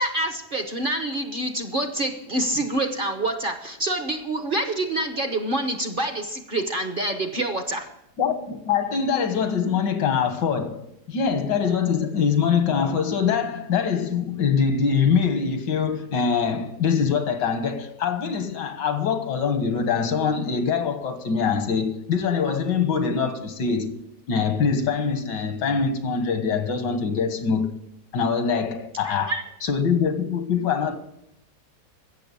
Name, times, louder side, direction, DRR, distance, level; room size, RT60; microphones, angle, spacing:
voice 1, 0.0-7.9 29.0-29.4, right 1 dB, 35° right, 1.0 m, -27 dB
voice 2, 8.2-24.0 24.3-27.8 28.1-29.4 29.6-31.0, left 6 dB, 80° left, 2.0 m, -23 dB
15.5 x 7.1 x 6.9 m
omnidirectional pair, 1.9 m